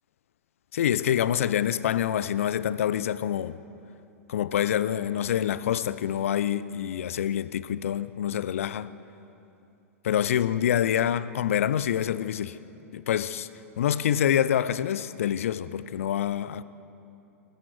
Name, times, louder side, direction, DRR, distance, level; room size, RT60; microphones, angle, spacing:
voice 1, 0.7-3.6 4.3-8.9 10.0-12.6 12.9-13.5 13.8-16.6, left 10 dB, 65° left, 0.8 m, -26 dB
21.5 x 18.5 x 8.0 m
figure-of-eight pair, 100°, 8 cm